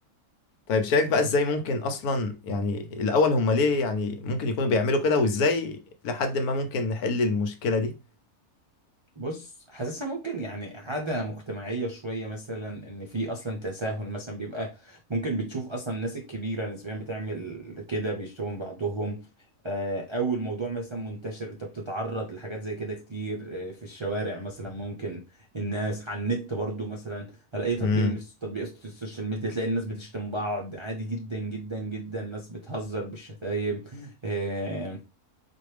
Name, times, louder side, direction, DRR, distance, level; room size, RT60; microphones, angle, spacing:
voice 1, 0.7-5.8 6.0-7.9 27.8-28.1, left 3 dB, 75° left, 1.2 m, -25 dB
voice 2, 9.2-19.3 19.6-35.0, right 2 dB, 50° right, 0.3 m, -32 dB
4.4 x 2.5 x 3.2 m
omnidirectional pair, 1.6 m